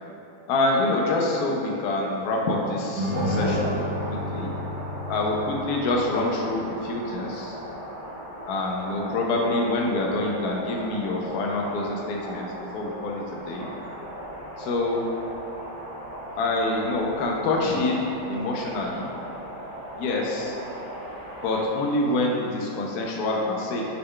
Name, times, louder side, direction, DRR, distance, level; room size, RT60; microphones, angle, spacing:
voice 1, 0.5-3.8 4.1-4.5 5.1-7.6 8.5-12.5 12.7-13.7 14.6-15.0 16.4-19.1 20.0-20.6 21.4-23.9, left 2 dB, 75° left, -1 dB, 0.9 m, -26 dB
sound 1, 3.0-21.7, right 1 dB, 60° left, 0.4 m, -37 dB
sound 2, 3.0-6.6, left 1 dB, 80° right, 1.4 m, -31 dB
6.2 x 2.2 x 3.6 m, 2.8 s
omnidirectional pair, 2.1 m